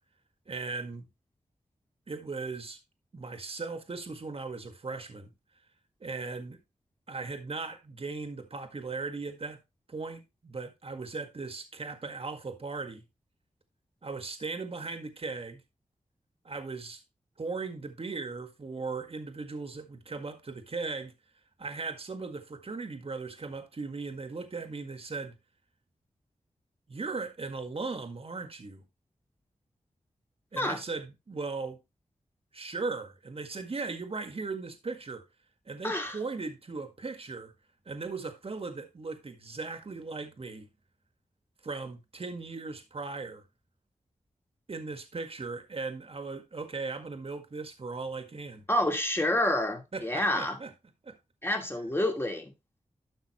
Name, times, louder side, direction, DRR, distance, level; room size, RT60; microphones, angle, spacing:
voice 1, 0.5-1.1 2.1-2.8 3.1-5.3 6.0-6.6 7.1-9.6 9.9-13.0 14.0-15.6 16.4-17.0 17.4-21.1 21.6-25.4 26.9-28.8 30.5-31.8 32.5-35.2 35.7-37.5 37.9-40.7 41.6-43.4 44.7-48.7 49.9-50.7 51.0-51.2, right 4 dB, 50° right, 1.8 m, -38 dB
voice 2, 35.8-36.2 48.7-50.6 51.4-52.5, left 1 dB, 15° left, 2.5 m, -28 dB
12.0 x 5.7 x 3.1 m
wide cardioid pair, 80°, 13 cm